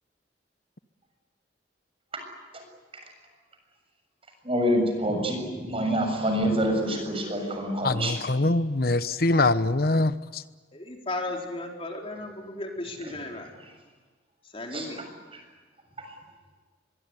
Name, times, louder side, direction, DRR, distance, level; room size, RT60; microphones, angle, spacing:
voice 1, 4.4-8.2 14.7-14.9, equal, 35° right, 4 dB, 7.1 m, -26 dB
voice 2, 7.8-10.1, left 2 dB, 60° left, 13 dB, 1.1 m, -23 dB
voice 3, 10.7-13.5 14.5-15.0, left 2 dB, 35° left, 1 dB, 4.2 m, -35 dB
25.0 x 22.5 x 9.9 m, 1.4 s
head